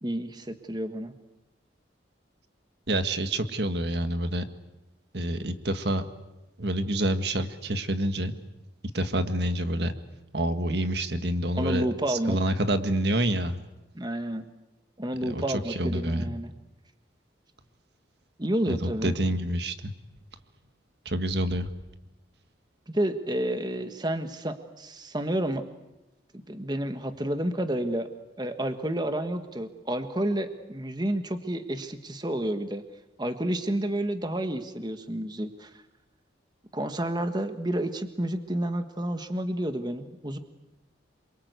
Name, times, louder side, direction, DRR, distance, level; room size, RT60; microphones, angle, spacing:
voice 1, 0.0-1.1 11.5-12.4 13.9-14.4 15.0-16.5 18.4-19.1 22.9-25.6 26.5-28.1 28.4-32.8 33.2-35.7 36.7-40.4, right 1 dB, 20° right, 8 dB, 1.5 m, -30 dB
voice 2, 2.9-4.4 5.1-6.0 6.6-8.3 8.9-9.9 10.3-13.6 15.3-16.3 18.7-19.9 21.1-21.7, right 1 dB, 55° right, 9 dB, 1.8 m, -27 dB
27.5 x 24.0 x 8.2 m, 0.99 s
head